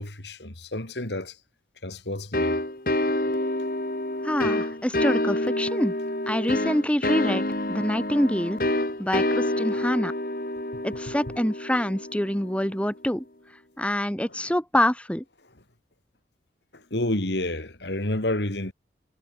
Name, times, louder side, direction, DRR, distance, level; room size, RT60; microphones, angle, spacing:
voice 1, 0.0-1.4 1.8-2.6 16.7-18.7, left 1 dB, 80° left, 3.3 m, -29 dB
sound 1, 2.3-12.8, left 1 dB, 50° left, 2.7 m, -28 dB
voice 2, 4.2-5.9 6.3-7.4 7.7-8.6 9.0-10.1 10.8-13.2 13.8-15.2, equal, 5° left, 1.6 m, -26 dB
head